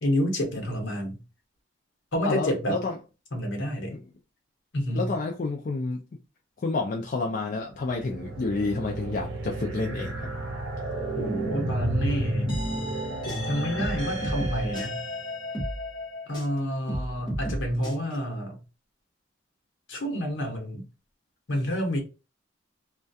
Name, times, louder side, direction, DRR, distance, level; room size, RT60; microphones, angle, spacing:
voice 1, 0.0-1.2 2.1-2.8 3.3-3.9 4.7-5.1 11.2-12.5 13.2-15.0 16.3-18.6 19.9-20.8 21.5-22.0, equal, 70° left, 0.9 m, -29 dB
voice 2, 2.2-3.0 3.9-4.0 4.9-6.0 6.6-10.3, left 3 dB, 45° left, 0.3 m, -29 dB
sound 1, 7.7-15.2, right 1 dB, 65° right, 0.8 m, -32 dB
sound 2, 12.5-16.6 16.9-17.9, equal, 25° left, 0.9 m, -33 dB
2.3 x 2.2 x 2.6 m
head